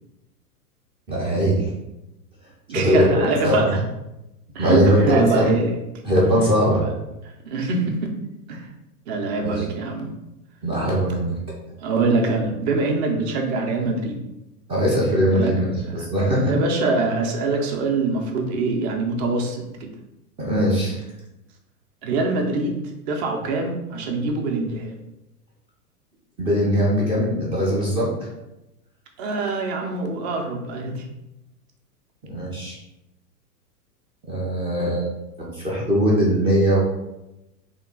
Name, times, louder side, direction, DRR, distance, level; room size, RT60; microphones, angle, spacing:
voice 1, 1.1-1.7 2.7-3.8 4.6-5.5 6.0-6.8 9.4-9.7 10.6-11.3 14.7-16.6 20.4-21.0 26.4-28.3 32.3-32.8 34.2-35.1 35.4-36.8, equal, 15° right, -5 dB, 0.4 m, -20 dB
voice 2, 2.7-3.8 4.5-4.8 5.1-5.7 7.4-8.1 8.5-8.7 9.1-10.1 11.8-14.2 15.3-15.5 16.0-19.9 22.0-25.0 29.2-31.0, right 3 dB, 45° right, 2 dB, 0.8 m, -24 dB
3.7 x 2.4 x 3.7 m, 0.93 s
hypercardioid pair, 110°, 48 cm